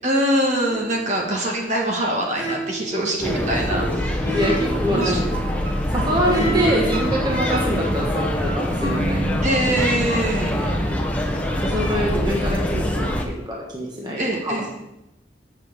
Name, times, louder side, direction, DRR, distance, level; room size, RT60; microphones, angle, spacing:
voice 1, 0.0-3.8 4.9-5.1 9.4-10.5 14.2-14.7, right 1 dB, 40° right, 0 dB, 1.6 m, -23 dB
sound 1, 0.7-1.1 2.4-3.0 4.3-4.9 6.3-6.9, right 3 dB, 90° right, 2.3 m, -30 dB
voice 2, 3.0-5.2 5.9-9.2 10.4-10.8 11.3-14.7, equal, 25° right, -3 dB, 1.4 m, -26 dB
sound 2, 3.2-13.2, left 1 dB, 10° left, 1.0 m, -24 dB
sound 3, 4.2-10.4, equal, 60° right, 3.6 m, -29 dB
6.7 x 6.0 x 7.4 m, 0.88 s
head